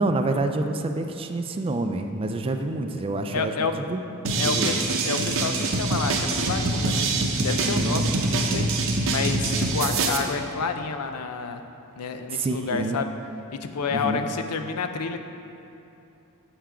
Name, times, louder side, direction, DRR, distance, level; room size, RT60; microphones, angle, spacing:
voice 1, 0.0-4.0 4.3-4.9 7.6-8.1 12.3-13.0 13.9-14.3, right 2 dB, 25° right, 6 dB, 0.3 m, -28 dB
voice 2, 3.3-3.8 4.4-7.1 7.4-8.7 9.1-11.6 12.0-13.1 13.5-15.2, left 5 dB, 90° left, 7 dB, 0.5 m, -29 dB
sound 1, 4.2-10.2, right 3 dB, 60° right, 0.7 m, -24 dB
7.2 x 5.7 x 4.8 m, 2.8 s
head